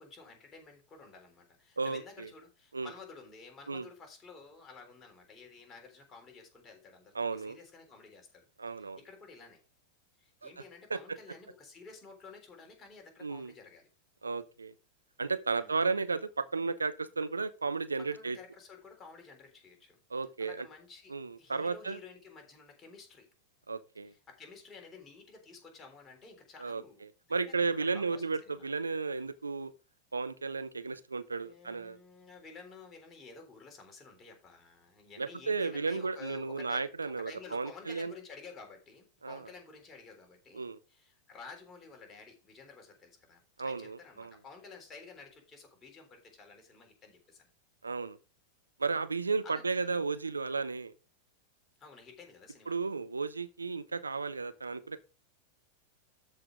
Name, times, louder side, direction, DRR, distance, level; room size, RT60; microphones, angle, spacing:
voice 1, 0.0-9.6 10.2-13.9 15.5-15.8 18.1-20.0 20.4-23.3 24.0-28.7 31.4-47.5 49.4-50.0 51.8-52.8, left 4 dB, 20° left, 3.5 m, -52 dB
voice 2, 1.8-2.3 2.7-2.9 3.7-3.9 7.1-7.6 8.6-9.0 10.4-10.5 10.9-11.0 13.2-13.5 14.2-14.7 15.2-18.4 20.1-20.7 21.1-22.0 23.7-24.1 26.6-29.7 30.1-32.0 35.2-38.1 39.2-39.5 40.5-40.8 43.6-44.3 47.8-48.2 48.8-50.9 52.7-55.0, right 4 dB, 75° right, 0.8 m, -34 dB
13.0 x 4.9 x 3.8 m
figure-of-eight pair, 90°, 0 cm